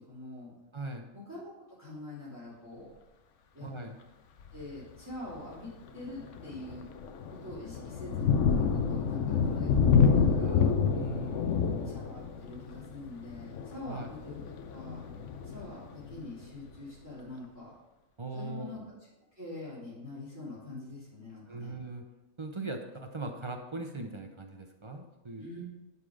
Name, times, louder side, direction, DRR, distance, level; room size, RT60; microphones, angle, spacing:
voice 1, 0.1-0.5 1.3-1.5 1.8-2.9 3.5-3.7 4.5-6.8 7.3-10.7 11.8-14.4 14.7-15.1 15.4-17.7 18.3-18.8 19.4-21.7 25.4-25.6, left 2 dB, 10° right, -11 dB, 3.1 m, -44 dB
voice 2, 0.7-1.1 3.6-3.9 10.9-11.9 13.8-14.1 18.2-18.7 21.5-22.0 22.4-25.4, right 2 dB, 35° right, 4 dB, 0.5 m, -40 dB
Thunder, 4.4-4.7 5.3-5.4 5.9-16.4, left 6 dB, 65° left, 1.0 m, -28 dB
12.0 x 4.2 x 5.0 m, 1.0 s
omnidirectional pair, 1.5 m